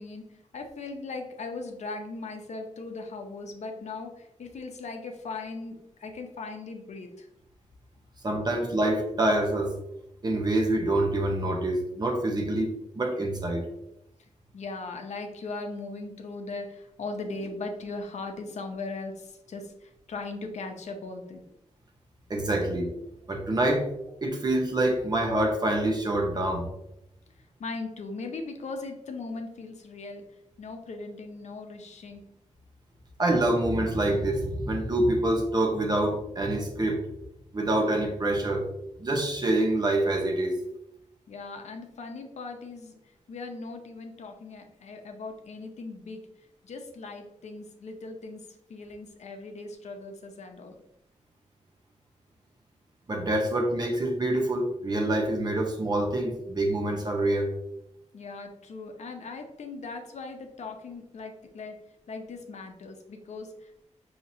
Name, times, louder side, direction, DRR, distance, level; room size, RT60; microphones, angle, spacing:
voice 1, 0.0-7.3 14.5-21.4 27.6-30.2 30.6-32.2 41.3-43.0 43.3-46.3 46.6-50.7 58.1-61.8 62.1-63.8, left 3 dB, 65° left, 4 dB, 0.6 m, -39 dB
voice 2, 8.2-9.8 10.2-13.7 22.3-22.9 23.3-23.9 24.2-26.7 33.2-37.0 37.5-38.7 39.0-40.6 53.1-57.5, right 1 dB, 35° right, 2 dB, 0.8 m, -26 dB
5.7 x 2.8 x 2.7 m, 0.84 s
wide cardioid pair, 115°, 13 cm